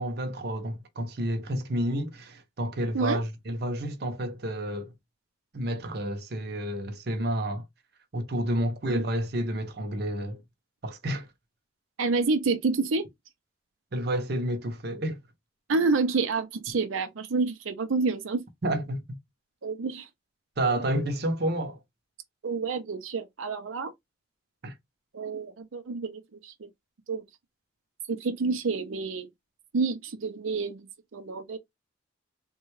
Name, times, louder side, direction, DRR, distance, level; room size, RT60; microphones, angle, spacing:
voice 1, 0.0-4.9 5.5-7.6 8.1-10.4 10.8-11.3 13.9-15.2 18.6-19.2 20.6-21.8 24.6-24.7, right 1 dB, 55° right, 0.7 m, -30 dB
voice 2, 12.0-13.1 15.7-18.4 19.6-20.1 22.4-23.9 25.1-26.7 27.1-27.2 28.1-29.3 29.7-30.9 31.1-31.6, right 4 dB, 90° right, 0.5 m, -28 dB
3.5 x 2.2 x 3.1 m
head